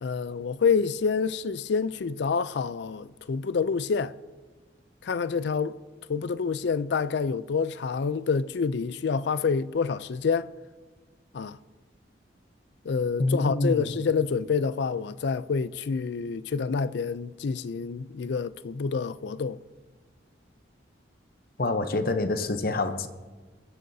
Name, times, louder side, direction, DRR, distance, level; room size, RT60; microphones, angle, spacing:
voice 1, 0.0-4.1 5.0-5.8 6.1-10.5 11.3-11.6 12.9-19.6, left 5 dB, 65° left, 0.4 m, -27 dB
voice 2, 13.2-13.9 21.6-23.1, left 2 dB, 50° left, 0.8 m, -26 dB
22.5 x 12.5 x 2.7 m
head